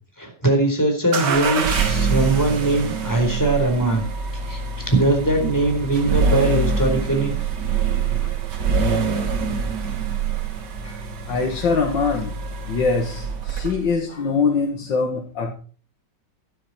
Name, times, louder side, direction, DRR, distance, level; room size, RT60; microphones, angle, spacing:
voice 1, 0.2-4.1 4.5-7.3 8.2-8.3, right 2 dB, 10° left, 2 dB, 4.4 m, -21 dB
sound 1, 1.1-14.0, right 5 dB, 65° right, 2.1 m, -25 dB
voice 2, 10.8-12.4 12.7-15.5, left 4 dB, 80° left, 1 dB, 2.4 m, -23 dB
12.0 x 11.5 x 4.4 m, 0.39 s
omnidirectional pair, 2.0 m